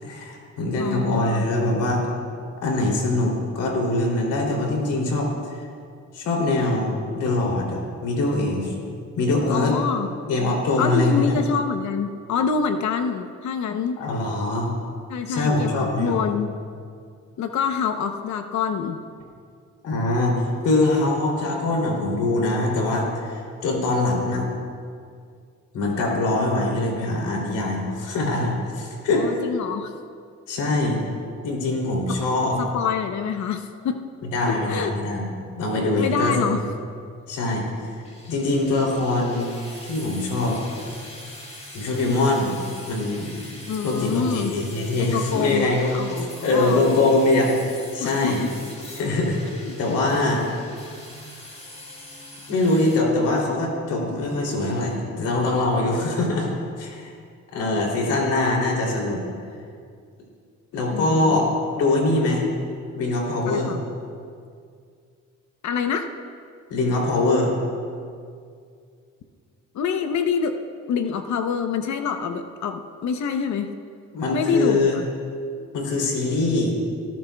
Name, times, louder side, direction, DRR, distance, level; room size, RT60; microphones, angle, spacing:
voice 1, 0.0-2.0 2.6-5.7 6.1-8.7 9.2-9.8 10.3-11.4 14.0-14.7 15.3-16.2 19.8-20.4 20.6-24.4 25.7-29.4 30.5-31.0 31.4-32.6 34.2-35.3 35.5-36.6 37.3-37.6 38.3-39.5 39.8-40.6 41.7-42.6 42.9-43.3 43.8-48.4 48.9-49.4 49.8-50.4 52.5-56.5 56.8-57.1 57.5-59.2 60.7-61.5 61.8-62.5 62.9-63.8 66.7-67.5 74.1-75.0 75.7-76.8, left 2 dB, 90° left, -1 dB, 3.0 m, -23 dB
voice 2, 0.8-1.4 9.5-10.1 10.8-14.0 15.1-16.5 17.4-19.0 29.1-29.9 32.1-32.2 32.6-34.0 34.5-34.9 36.0-36.6 43.7-44.5 45.0-45.7 45.9-46.8 48.0-48.5 49.5-49.7 60.9-61.4 63.5-63.8 65.6-66.1 69.7-70.6 70.9-73.7 74.3-75.1, left 6 dB, 70° left, 7 dB, 0.8 m, -26 dB
sound 1, 38.0-53.0, left 1 dB, 20° left, 3.2 m, -42 dB
19.0 x 13.5 x 2.3 m, 2.2 s
cardioid pair, 90°, 30 cm